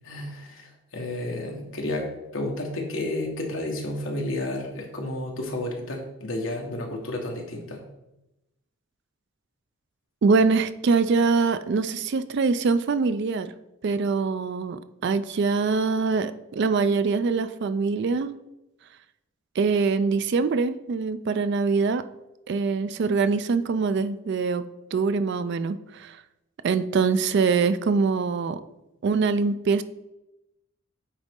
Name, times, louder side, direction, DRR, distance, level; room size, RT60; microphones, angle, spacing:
voice 1, 0.0-7.8, left 1 dB, 60° left, 1 dB, 1.4 m, -31 dB
voice 2, 10.2-13.5 13.8-18.3 19.6-22.0 22.5-24.6 24.9-26.2 26.6-28.6 29.0-29.8, right 4 dB, 50° right, 13 dB, 0.3 m, -23 dB
8.9 x 4.1 x 3.6 m, 0.92 s
head